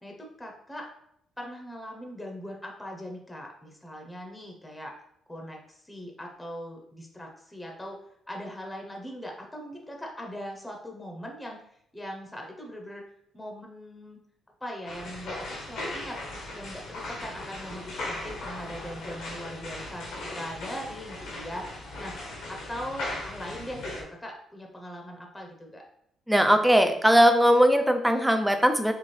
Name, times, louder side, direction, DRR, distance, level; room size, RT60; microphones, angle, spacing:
voice 1, 0.0-0.9 1.4-4.9 5.3-11.6 11.9-13.0 13.3-14.2 14.6-16.2 16.5-20.1 20.3-22.2 22.5-25.9, equal, 10° left, 1 dB, 0.9 m, -40 dB
sound 1, 14.9-24.0, left 2 dB, 80° left, 1.3 m, -38 dB
voice 2, 26.3-28.9, equal, 5° right, 7 dB, 0.6 m, -20 dB
4.3 x 3.4 x 3.3 m, 0.74 s
cardioid pair, 90°, 0 cm